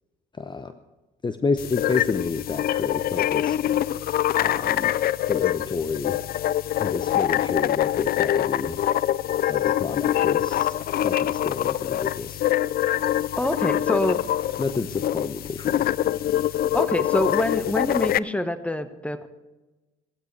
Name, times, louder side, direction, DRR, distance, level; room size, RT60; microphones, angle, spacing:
voice 1, 0.4-0.8 1.2-3.6 4.4-4.9 5.3-6.2 6.8-8.8 9.5-10.7 11.0-12.5 14.6-15.9, left 4 dB, 25° left, 10 dB, 0.8 m, -29 dB
sound 1, 1.6-18.2, left 12 dB, 50° left, 0.5 m, -24 dB
voice 2, 13.4-14.2 16.7-19.3, left 1 dB, 5° left, 11 dB, 1.2 m, -25 dB
18.0 x 14.5 x 3.4 m, 1.1 s
supercardioid pair, 70°, 20 cm